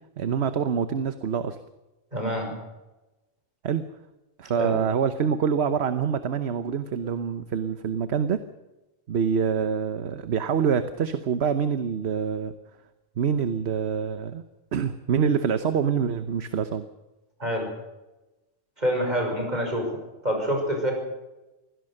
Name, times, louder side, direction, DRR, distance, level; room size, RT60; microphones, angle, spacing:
voice 1, 0.2-1.6 3.6-3.8 4.4-8.4 9.1-12.5 13.2-14.4 14.7-16.8, right 7 dB, 60° right, 10 dB, 1.2 m, -25 dB
voice 2, 2.1-2.5 4.5-4.8 17.4-17.7 18.8-20.9, equal, 35° right, 2 dB, 6.2 m, -27 dB
24.0 x 17.0 x 6.5 m, 1.0 s
omnidirectional pair, 1.2 m